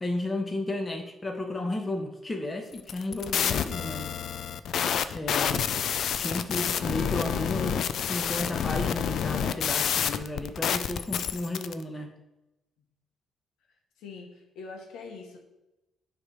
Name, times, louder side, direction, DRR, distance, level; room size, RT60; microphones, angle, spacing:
voice 1, 0.0-4.1 5.1-5.7 6.2-12.1, left 2 dB, 20° left, 3 dB, 1.1 m, -33 dB
sound 1, 2.8-11.7, left 8 dB, 70° left, 0.4 m, -28 dB
voice 2, 14.0-15.4, left 4 dB, 90° left, 2 dB, 1.1 m, -44 dB
9.5 x 3.3 x 4.9 m, 0.97 s
cardioid pair, 90°, 0 cm